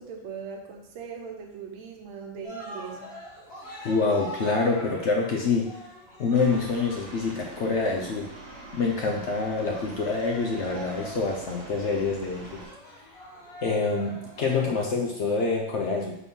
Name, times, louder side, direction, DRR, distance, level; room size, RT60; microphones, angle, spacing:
voice 1, 0.0-3.2, right 6 dB, 85° right, 2 dB, 1.7 m, -40 dB
Cheering, 2.4-14.8, equal, 35° left, 2.0 m, -43 dB
voice 2, 3.8-5.7 6.2-8.3 8.7-12.6 13.6-16.2, left 4 dB, 75° left, 0 dB, 0.6 m, -26 dB
Aircraft, 6.3-12.6, right 2 dB, 45° right, 1.2 m, -45 dB
4.2 x 4.2 x 5.4 m, 0.79 s
omnidirectional pair, 2.1 m